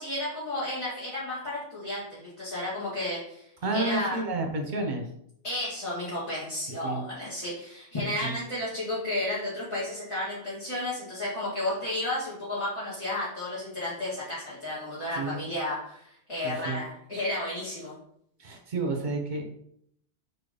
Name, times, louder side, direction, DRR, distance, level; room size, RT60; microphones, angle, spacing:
voice 1, 0.0-3.5 3.7-4.2 5.4-17.9, left 1 dB, 25° left, -11 dB, 2.1 m, -32 dB
voice 2, 3.6-5.0 6.8-7.0 8.2-8.3 15.1-15.4 16.4-16.8 18.4-19.4, right 3 dB, 45° right, 3 dB, 1.2 m, -30 dB
4.7 x 4.1 x 5.1 m, 0.69 s
omnidirectional pair, 1.2 m